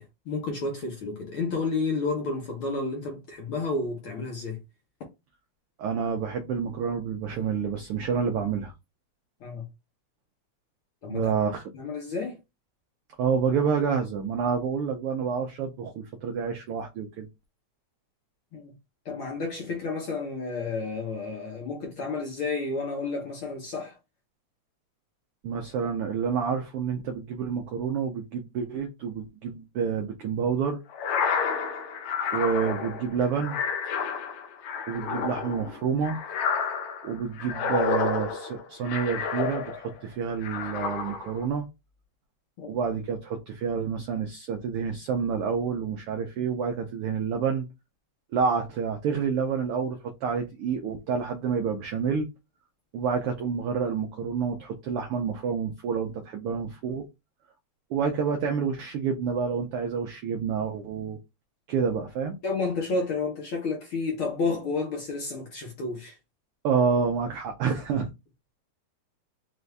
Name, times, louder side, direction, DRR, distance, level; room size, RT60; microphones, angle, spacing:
voice 1, 0.0-4.6 9.4-9.7 11.0-11.3 11.7-12.4 18.5-18.7 19.0-23.9 42.6-42.7 62.4-66.1, left 3 dB, 60° left, 1.6 m, -31 dB
voice 2, 5.8-8.7 11.1-11.6 13.2-17.3 25.4-30.8 32.3-33.6 34.9-36.2 37.0-41.7 42.6-47.7 48.3-52.3 52.9-57.0 57.9-61.2 61.7-62.3 66.6-68.1, right 6 dB, 80° right, 1.3 m, -28 dB
sound 1, 30.9-40.0 40.4-41.4, left 6 dB, 75° left, 1.9 m, -30 dB
4.7 x 2.6 x 3.3 m
omnidirectional pair, 3.3 m